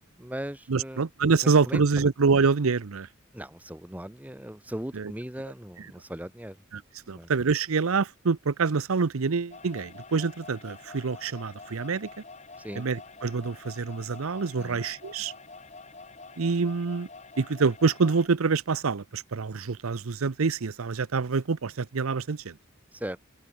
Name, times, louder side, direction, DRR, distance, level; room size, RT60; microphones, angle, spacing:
voice 1, 0.2-1.0 1.6-2.1 3.3-6.6 7.1-7.3 12.6-12.9 14.6-14.8 22.9-23.2, right 1 dB, 5° right, 1.0 m, -38 dB
voice 2, 0.7-3.1 4.9-5.1 6.7-6.8 7.1-12.1 12.8-15.3 16.4-17.1 17.4-22.6, right 4 dB, 85° right, 0.7 m, -26 dB
sound 1, 9.5-18.3, left 3 dB, 30° left, 3.6 m, -47 dB
open air
head